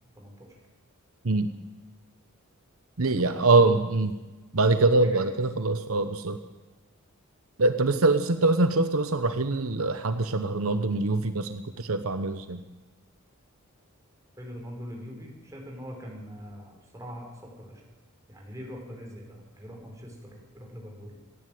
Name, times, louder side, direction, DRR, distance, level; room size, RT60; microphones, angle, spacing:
voice 1, 0.2-0.6 3.3-3.9 5.0-5.4 14.4-17.8 18.3-21.2, equal, 15° right, 1 dB, 5.3 m, -43 dB
voice 2, 3.0-4.1 4.5-6.4 7.6-12.6, right 3 dB, 70° right, 9 dB, 1.0 m, -24 dB
26.0 x 11.0 x 9.3 m, 1.1 s
head